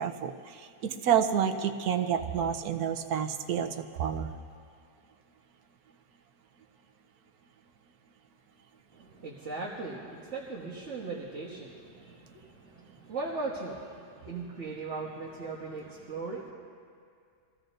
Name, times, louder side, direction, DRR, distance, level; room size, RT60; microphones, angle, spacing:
voice 1, 0.0-4.3, right 8 dB, 75° right, 6 dB, 1.3 m, -29 dB
voice 2, 8.9-16.5, right 3 dB, 50° right, -4 dB, 1.7 m, -38 dB
25.0 x 15.5 x 2.6 m, 2.3 s
omnidirectional pair, 1.7 m